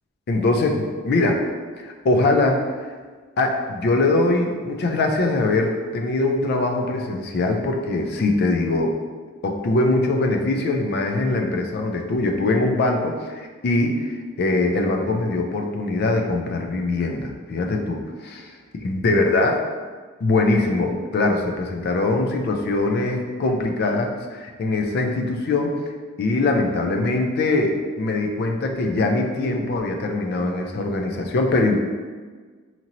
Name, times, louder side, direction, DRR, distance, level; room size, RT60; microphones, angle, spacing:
voice 1, 0.3-1.4 1.8-2.7 3.4-8.9 9.4-18.5 18.8-19.6 20.2-25.8 26.2-31.8, left 2 dB, 50° left, 3 dB, 0.3 m, -22 dB
2.9 x 2.8 x 2.5 m, 1.5 s
head